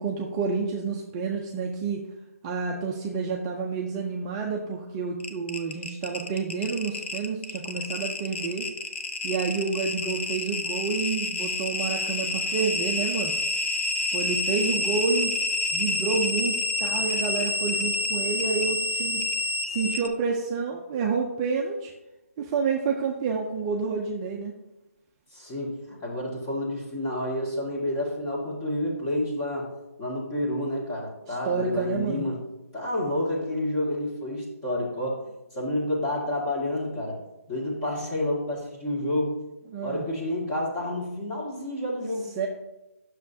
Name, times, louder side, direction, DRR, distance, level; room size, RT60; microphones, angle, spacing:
voice 1, 0.0-2.0 2.4-8.7 9.2-13.4 14.1-15.3 15.7-19.3 19.6-21.9 22.4-24.5 31.3-32.3 39.7-40.1 42.4-42.5, right 5 dB, 20° right, 0 dB, 0.5 m, -29 dB
sound 1, 5.2-20.1, left 2 dB, 45° left, 0.8 m, -28 dB
voice 2, 25.3-29.7 30.0-32.4 32.7-35.2 35.5-37.2 37.5-39.3 39.8-42.3, left 1 dB, 20° left, -3 dB, 1.8 m, -29 dB
9.3 x 6.4 x 2.7 m, 0.96 s
figure-of-eight pair, 155°, 8 cm